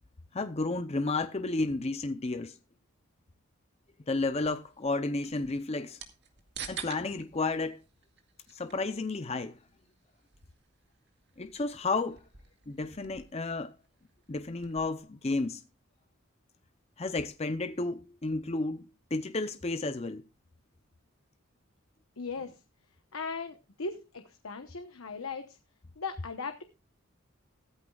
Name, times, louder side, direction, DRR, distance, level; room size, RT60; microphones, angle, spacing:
voice 1, 0.3-2.6 4.1-6.0 6.7-7.8 8.5-9.6 11.4-12.2 12.7-13.7 14.3-15.6 17.0-20.2, left 3 dB, 30° left, 0.6 m, -32 dB
sound 1, 4.3-15.0, right 7 dB, 50° right, 2.1 m, -50 dB
voice 2, 22.2-22.6 23.1-25.6 26.0-26.6, left 4 dB, 80° left, 1.0 m, -38 dB
15.5 x 13.5 x 2.4 m
head